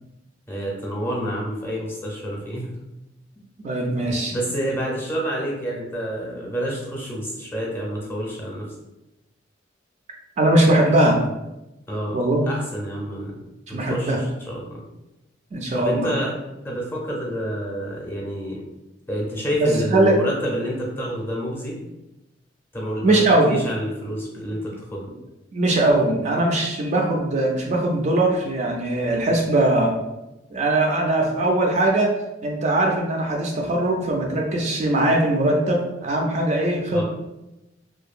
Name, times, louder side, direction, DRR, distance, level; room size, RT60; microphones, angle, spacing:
voice 1, 0.5-2.7 3.3-3.4 4.3-8.7 11.9-12.2 12.5-13.3 13.7-14.8 15.7-16.3 16.6-18.6 19.1-21.8 22.7-25.1 36.9-37.0, equal, 10° left, -3 dB, 0.6 m, -28 dB
voice 2, 3.6-4.3 10.4-11.2 12.1-12.5 13.7-14.2 15.5-16.1 19.6-20.2 23.0-23.5 25.5-29.9 30.5-32.1 32.4-37.0, right 1 dB, 40° right, 0 dB, 0.3 m, -20 dB
2.7 x 2.2 x 2.4 m, 0.94 s
head